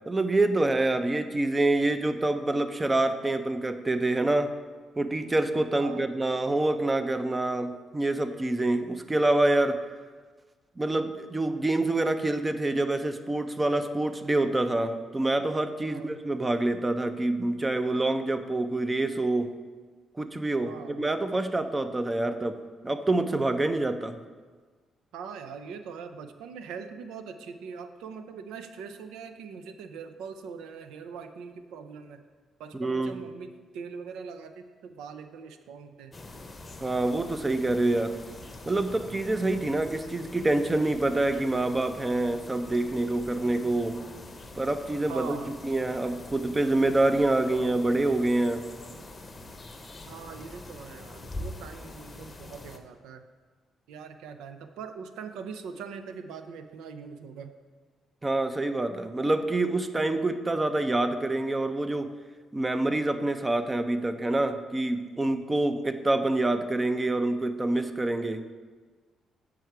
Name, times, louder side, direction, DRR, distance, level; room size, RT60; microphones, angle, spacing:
voice 1, 0.1-4.5 5.0-9.8 10.8-19.5 20.2-22.6 22.8-24.2 32.8-33.2 36.8-38.1 38.7-44.0 44.6-45.4 45.6-48.6 58.2-62.1 62.5-68.4, right 2 dB, 20° right, 9 dB, 0.5 m, -26 dB
voice 2, 5.7-6.1 15.9-16.2 20.6-21.1 25.1-32.2 32.6-36.2 45.1-45.5 50.1-53.3 53.9-57.5, right 6 dB, 90° right, 9 dB, 0.4 m, -42 dB
sound 1, 36.1-52.8, left 2 dB, 25° left, 0.7 m, -44 dB
7.9 x 4.8 x 4.6 m, 1.4 s
cardioid pair, 90°, 0 cm